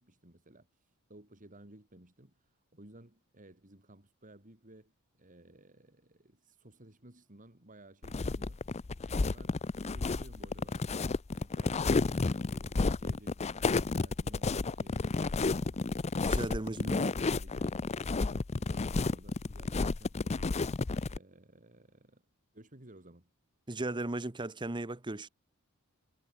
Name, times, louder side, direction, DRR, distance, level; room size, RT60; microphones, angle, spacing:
voice 1, 0.0-8.6 9.0-15.8 16.4-17.0 17.3-17.7 18.1-22.2 22.5-23.3, right 1 dB, 35° right, 3.6 m, -57 dB
sound 1, 8.0-21.2, left 3 dB, 30° left, 0.5 m, -31 dB
voice 2, 16.2-17.1 23.7-25.3, right 2 dB, 20° right, 0.9 m, -36 dB
head